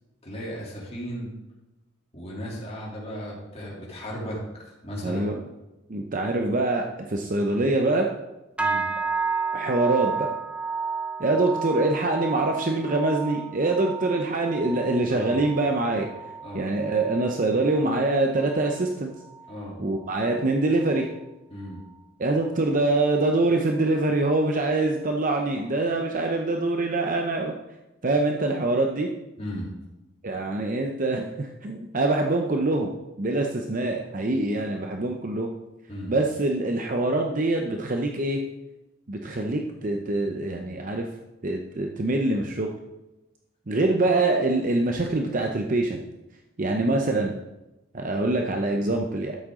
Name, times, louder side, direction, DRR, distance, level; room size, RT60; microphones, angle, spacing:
voice 1, 0.2-1.3 2.1-5.3 8.6-8.9 15.1-15.4 16.4-16.7 19.5-19.8 21.5-21.8 29.4-29.7 35.9-36.1, equal, 30° left, -4 dB, 3.0 m, -35 dB
voice 2, 5.0-5.4 5.9-8.1 9.5-10.3 11.2-16.1 16.5-19.1 19.8-21.1 22.2-27.5 28.0-29.1 30.2-32.9 33.2-35.5 36.1-38.4 39.1-41.0 41.4-42.7 43.7-46.0 46.6-47.3 47.9-49.4, right 2 dB, 40° right, 2 dB, 0.7 m, -24 dB
sound 1, 8.6-18.1 18.4-18.9 19.3-19.6 20.2-20.3, right 4 dB, 5° right, 0.6 m, -32 dB
12.5 x 7.7 x 3.8 m, 1.0 s
head